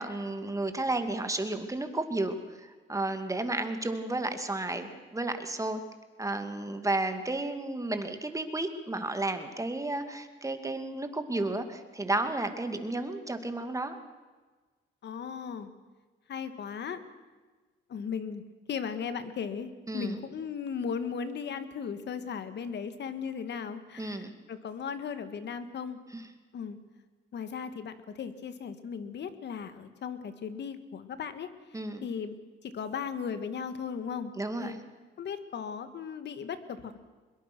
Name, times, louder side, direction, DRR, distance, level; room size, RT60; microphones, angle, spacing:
voice 1, 0.0-5.8 6.2-14.0 19.9-20.2 24.0-24.3 26.1-26.2 31.7-32.1 34.4-34.8, right 2 dB, 15° right, 8 dB, 2.3 m, -32 dB
voice 2, 15.0-15.7 16.3-17.0 17.9-18.4 18.7-26.0 26.5-26.8 27.3-32.3 32.6-34.3 34.6-34.8 35.2-37.0, left 6 dB, 60° left, 11 dB, 1.9 m, -37 dB
23.5 x 21.5 x 6.2 m, 1.3 s
cardioid pair, 90°, 20 cm